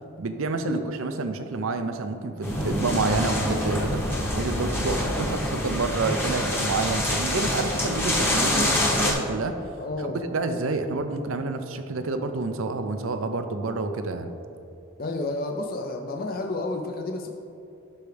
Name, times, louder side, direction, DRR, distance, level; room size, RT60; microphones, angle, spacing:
voice 1, 0.2-4.0 4.3-9.6 10.0-14.3, right 3 dB, 65° right, 8 dB, 0.5 m, -28 dB
sound 1, 2.4-9.1, left 1 dB, 10° left, 0.9 m, -26 dB
voice 2, 9.8-10.2 15.0-17.3, left 2 dB, 40° left, 3 dB, 0.5 m, -30 dB
11.5 x 4.6 x 3.3 m, 2.8 s
head